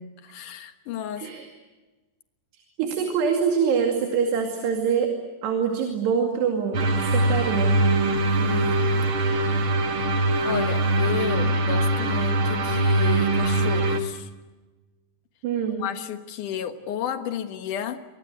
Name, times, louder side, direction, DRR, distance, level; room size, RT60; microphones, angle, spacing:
voice 1, 0.2-1.3 8.4-9.2 10.4-14.3 15.7-18.0, left 9 dB, 60° left, 8 dB, 2.5 m, -33 dB
voice 2, 1.2-1.5 2.8-5.1 5.4-7.8 15.4-15.8, right 6 dB, 80° right, 3 dB, 4.6 m, -24 dB
sound 1, 6.7-14.0, right 2 dB, 45° right, 2.0 m, -22 dB
27.5 x 24.0 x 8.1 m, 1.2 s
omnidirectional pair, 4.7 m